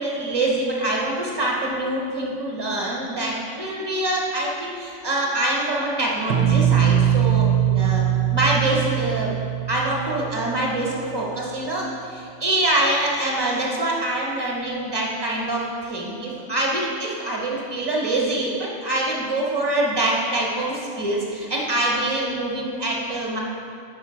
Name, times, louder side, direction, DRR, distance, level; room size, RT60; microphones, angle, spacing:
voice 1, 0.0-9.3 9.7-23.4, right 1 dB, 20° right, -3 dB, 1.0 m, -25 dB
sound 1, 6.3-11.2, right 10 dB, 65° right, 0.8 m, -21 dB
5.6 x 4.7 x 5.7 m, 2.5 s
omnidirectional pair, 1.3 m